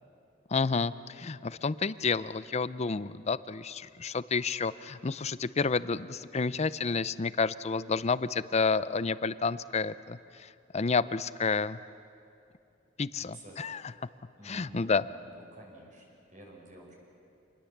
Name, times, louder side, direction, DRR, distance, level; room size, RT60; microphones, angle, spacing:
voice 1, 0.5-11.8 13.0-13.8 14.5-15.0, left 4 dB, 35° left, 16 dB, 0.5 m, -30 dB
voice 2, 13.2-13.6 14.4-16.9, right 1 dB, 45° right, -1 dB, 5.7 m, -51 dB
27.0 x 20.5 x 7.3 m, 2.6 s
head